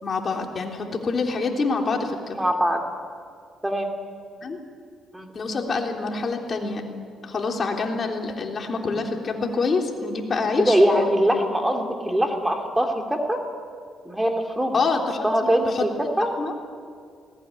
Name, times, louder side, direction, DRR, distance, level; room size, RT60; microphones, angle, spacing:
voice 1, 0.0-2.4 4.4-4.6 5.3-6.8 7.2-11.1 14.7-15.8 16.4-16.5, left 4 dB, 45° left, 2 dB, 3.5 m, -26 dB
voice 2, 2.3-2.8 3.6-3.9 5.1-5.3 10.6-13.4 14.0-14.8 15.2-16.3, equal, 10° right, 3 dB, 2.6 m, -22 dB
20.5 x 19.0 x 9.9 m, 2.2 s
cardioid pair, 90°, 0 cm